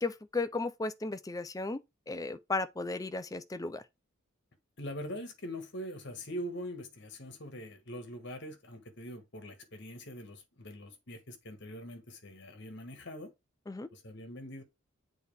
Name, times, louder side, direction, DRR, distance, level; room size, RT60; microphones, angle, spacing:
voice 1, 0.0-1.8 2.1-3.8 13.7-13.9, left 3 dB, 15° left, 0.5 m, -35 dB
voice 2, 4.8-13.3 13.9-14.6, equal, 55° left, 1.6 m, -43 dB
7.8 x 4.1 x 3.4 m
head